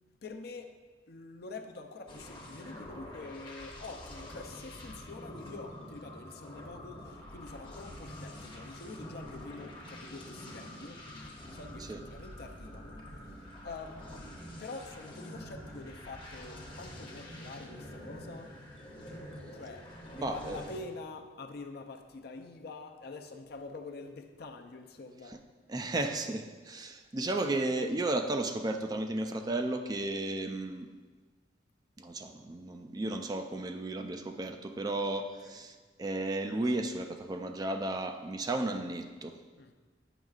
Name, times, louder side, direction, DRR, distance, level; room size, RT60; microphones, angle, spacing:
voice 1, 0.2-0.7 1.1-14.3 14.6-18.6 19.5-25.5 35.4-35.6 39.6-39.7, left 3 dB, 60° left, 6 dB, 0.5 m, -46 dB
sound 1, 2.1-20.8, left 1 dB, 25° left, 0.8 m, -46 dB
voice 2, 20.1-20.6 25.7-30.9 32.0-39.3, right 2 dB, 20° right, 6 dB, 0.3 m, -34 dB
9.0 x 6.3 x 2.4 m, 1.4 s
head